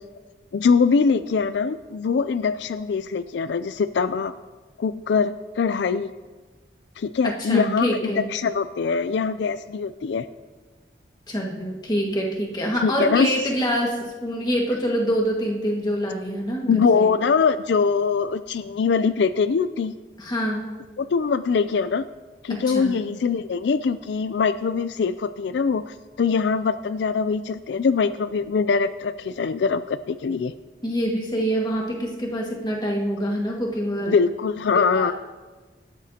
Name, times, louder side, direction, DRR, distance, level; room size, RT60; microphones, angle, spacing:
voice 1, 0.5-4.3 4.8-6.1 7.0-10.3 12.8-13.3 16.7-19.9 21.0-22.0 22.4-30.5 34.0-35.1, left 5 dB, 75° left, 13 dB, 0.4 m, -23 dB
voice 2, 7.2-8.3 11.3-17.1 20.2-20.7 22.5-23.0 30.8-34.2 34.7-35.1, equal, 25° left, -1 dB, 1.7 m, -26 dB
17.5 x 13.0 x 2.9 m, 1.3 s
head